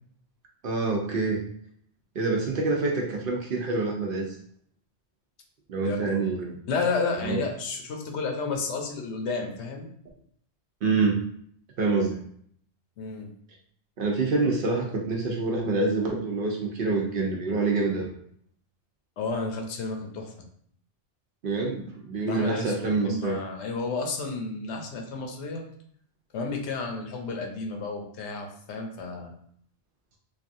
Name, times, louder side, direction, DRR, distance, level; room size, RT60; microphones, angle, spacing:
voice 1, 0.6-1.4 2.2-4.4 5.7-6.6 7.2-7.4 10.8-11.2 11.8-12.2 14.0-18.1 21.4-23.4, right 3 dB, 60° right, 0 dB, 0.6 m, -26 dB
voice 2, 5.8-6.4 6.7-9.9 13.0-13.3 19.2-20.3 22.3-25.6 26.3-29.3, left 4 dB, 80° left, 2 dB, 0.9 m, -32 dB
3.2 x 2.4 x 2.5 m, 0.63 s
omnidirectional pair, 1.2 m